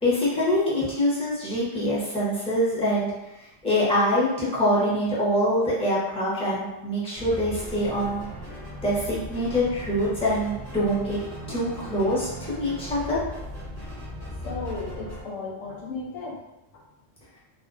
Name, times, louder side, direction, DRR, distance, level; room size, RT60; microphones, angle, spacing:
voice 1, 0.0-3.1 3.6-8.2 8.8-11.2 11.5-13.2, equal, 5° left, -8 dB, 0.5 m, -24 dB
sound 1, 7.1-15.2, equal, 10° right, 1.0 m, -38 dB
voice 2, 14.4-16.4 16.7-16.8, left 4 dB, 80° left, -2 dB, 1.0 m, -35 dB
2.5 x 2.1 x 2.4 m, 0.91 s
omnidirectional pair, 1.4 m